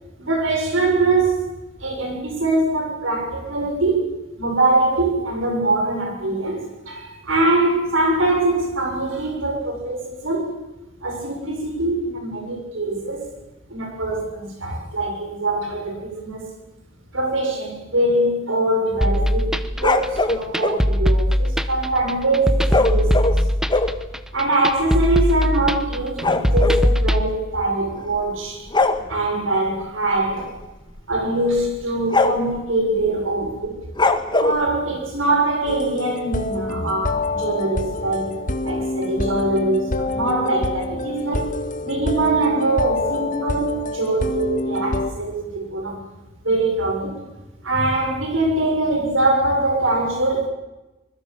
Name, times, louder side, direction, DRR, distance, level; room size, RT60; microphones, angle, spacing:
voice 1, 0.2-1.5 1.8-10.5 11.0-13.4 13.7-16.5 17.1-19.5 19.8-23.4 24.3-28.7 29.1-30.6 31.1-33.8 34.4-46.0 46.4-47.2 47.6-50.5, right 2 dB, 70° right, 6.9 m, -23 dB
sound 1, 19.0-27.2, equal, 5° right, 1.0 m, -20 dB
sound 2, 19.7-20.8 22.7-24.0 24.7-24.8 25.0-25.2 25.5-26.9 28.0-28.3 28.7-29.0 30.4-30.6 31.0-31.1 31.6-31.7 32.1-32.6 34.0-34.6, left 2 dB, 20° left, 1.6 m, -21 dB
sound 3, 35.7-45.1, left 2 dB, 40° left, 1.7 m, -26 dB
24.5 x 21.5 x 7.2 m
head